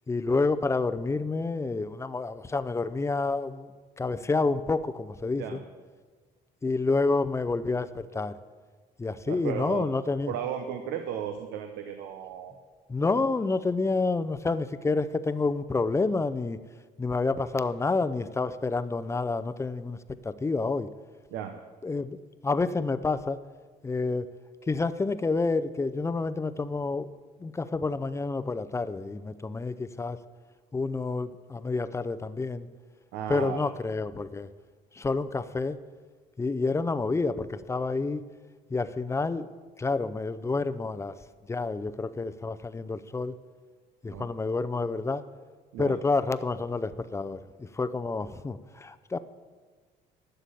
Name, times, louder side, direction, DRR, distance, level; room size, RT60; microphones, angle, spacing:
voice 1, 0.1-3.7 4.0-5.6 6.6-8.3 9.0-10.3 12.9-16.6 17.0-20.9 21.8-22.2 22.4-23.4 23.8-24.3 24.7-27.1 27.4-30.2 30.7-32.7 33.3-34.5 35.0-35.8 36.4-38.2 38.7-39.5 39.8-41.1 41.5-43.3 44.0-45.2 45.8-49.2, left 3 dB, 15° left, 13 dB, 0.5 m, -29 dB
voice 2, 9.3-9.9 10.3-12.5 21.3-21.5 33.1-33.6 44.1-44.3 45.7-46.0, right 9 dB, 90° right, 6 dB, 0.9 m, -35 dB
11.5 x 6.8 x 8.4 m, 1.4 s
cardioid pair, 110°, 17 cm